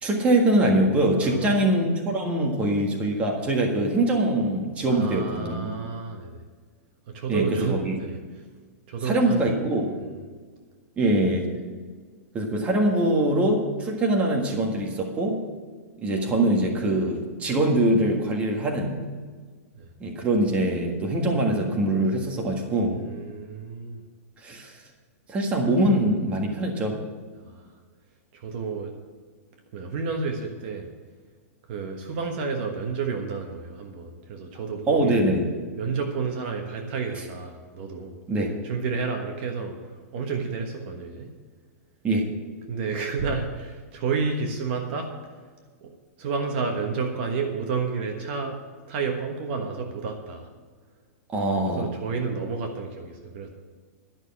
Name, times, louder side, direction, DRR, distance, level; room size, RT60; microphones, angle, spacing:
voice 1, 0.0-5.7 7.3-8.0 9.0-9.9 11.0-11.5 12.3-15.4 16.0-19.0 20.0-23.0 24.4-24.8 25.3-26.9 34.9-35.5 38.3-38.5 42.0-42.3 51.3-51.9, right 1 dB, 15° right, 1 dB, 1.6 m, -23 dB
voice 2, 1.2-1.6 4.9-6.4 7.1-8.4 8.9-10.2 19.7-19.9 22.9-24.0 27.4-27.7 28.3-28.9 29.7-30.9 31.7-35.3 35.8-38.2 38.6-41.3 42.7-45.3 45.8-45.9 46.2-48.6 48.9-50.5 51.7-53.5, right 5 dB, 45° right, 4 dB, 1.3 m, -31 dB
12.0 x 6.5 x 8.8 m, 1.5 s
supercardioid pair, 160°, 8 cm